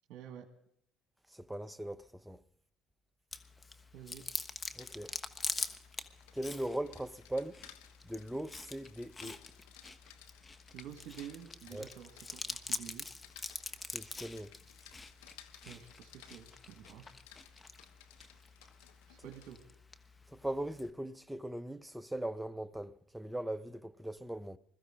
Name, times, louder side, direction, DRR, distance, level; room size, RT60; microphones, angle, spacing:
voice 1, 0.1-0.4 3.9-4.2 10.7-13.0 15.6-17.1 19.1-19.6, right 10 dB, 70° right, 1.6 m, -49 dB
voice 2, 1.3-2.4 4.7-5.2 6.3-7.6 8.0-9.4 11.7-11.9 13.8-14.5 20.3-24.6, right 1 dB, 5° right, 0.7 m, -40 dB
Chewing mastication, 3.3-20.9, left 3 dB, 25° left, 1.2 m, -45 dB
Rain, 4.5-19.6, left 11 dB, 90° left, 1.2 m, -60 dB
21.5 x 14.5 x 3.7 m
supercardioid pair, 75°, 0 cm